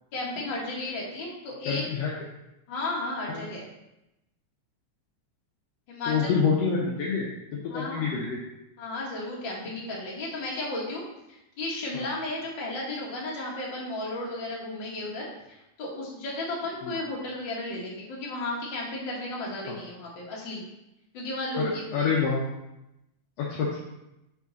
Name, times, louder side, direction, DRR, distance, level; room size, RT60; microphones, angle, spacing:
voice 1, 0.1-1.8 2.7-3.7 5.9-6.3 7.7-8.1 8.8-11.0 11.3-20.6 21.1-22.1, left 2 dB, 45° left, -4 dB, 1.9 m, -34 dB
voice 2, 1.7-2.1 3.3-3.4 6.1-7.3 7.5-8.4 11.9-12.1 16.8-17.0 19.7-19.8 21.6-22.6 23.4-23.8, left 5 dB, 70° left, -4 dB, 1.8 m, -27 dB
5.9 x 4.9 x 4.0 m, 0.90 s
omnidirectional pair, 3.3 m